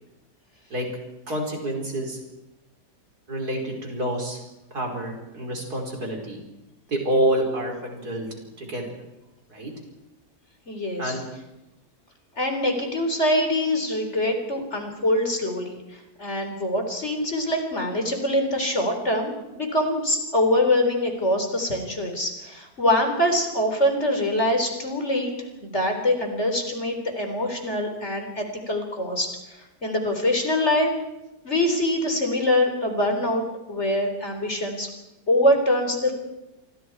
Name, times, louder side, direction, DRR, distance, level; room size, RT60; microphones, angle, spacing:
voice 1, 1.3-2.2 3.3-4.4 4.7-6.4 6.9-8.3 8.6-8.9 9.5-9.7 11.0-11.3, right 1 dB, 65° right, 1 dB, 5.7 m, -27 dB
voice 2, 10.7-11.2 12.4-25.3 25.6-29.3 29.8-30.9 31.4-34.9 35.3-36.1, left 1 dB, 40° left, 4 dB, 4.3 m, -24 dB
29.0 x 24.5 x 4.8 m, 0.97 s
omnidirectional pair, 1.8 m